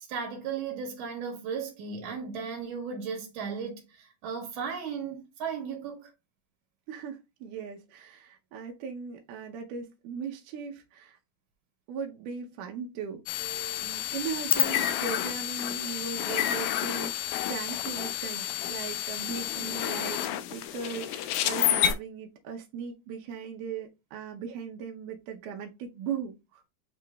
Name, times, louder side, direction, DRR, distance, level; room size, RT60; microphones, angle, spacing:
voice 1, 0.0-6.1 13.4-13.9, right 6 dB, 60° right, 2.0 m, -36 dB
voice 2, 6.9-11.2 11.9-13.2 13.8-26.6, right 6 dB, 80° right, 2.2 m, -38 dB
sound 1, 13.3-21.9, left 12 dB, 80° left, 1.7 m, -30 dB
8.3 x 2.9 x 2.2 m
omnidirectional pair, 3.7 m